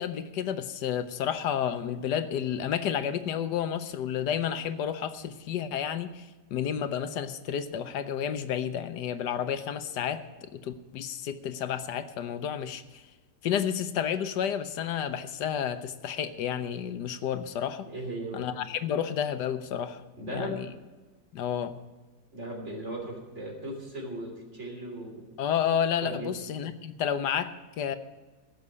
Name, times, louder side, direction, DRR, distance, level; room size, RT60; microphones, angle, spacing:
voice 1, 0.0-6.3 6.5-10.2 10.5-13.0 13.4-17.9 18.3-20.0 20.3-20.7 21.3-21.7 25.4-28.0, left 9 dB, 75° left, 10 dB, 1.3 m, -31 dB
voice 2, 17.9-18.5 20.2-20.6 22.3-25.2 26.0-26.4, right 1 dB, 40° right, -1 dB, 3.5 m, -37 dB
16.0 x 6.7 x 8.3 m, 1.2 s
omnidirectional pair, 1.9 m